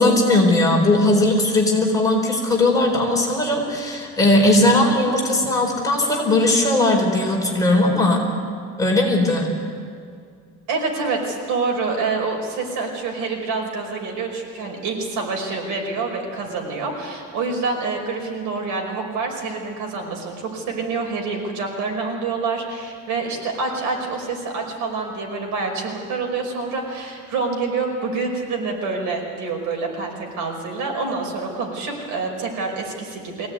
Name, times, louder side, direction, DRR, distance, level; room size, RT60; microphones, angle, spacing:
voice 1, 0.0-8.2 8.8-9.5, left 2 dB, 10° left, -1 dB, 4.0 m, -18 dB
voice 2, 10.7-33.5, right 4 dB, 80° right, 1 dB, 5.4 m, -27 dB
23.5 x 17.5 x 9.6 m, 2.3 s
cardioid pair, 170°, 31 cm